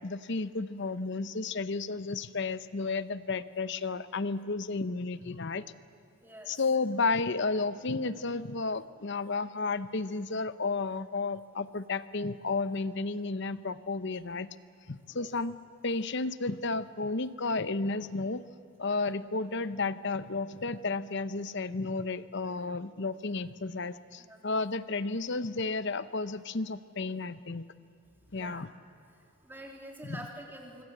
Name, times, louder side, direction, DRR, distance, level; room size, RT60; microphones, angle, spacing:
voice 1, 0.0-5.6 6.5-14.5 14.9-15.5 15.8-18.4 18.8-27.6 28.3-28.7 30.0-30.2, left 3 dB, 55° left, 14 dB, 0.8 m, -32 dB
voice 2, 6.2-6.5 15.1-15.3 24.2-24.5 28.3-28.7 29.1-30.8, right 1 dB, 10° right, 0 dB, 3.3 m, -47 dB
25.0 x 25.0 x 8.0 m, 2.5 s
head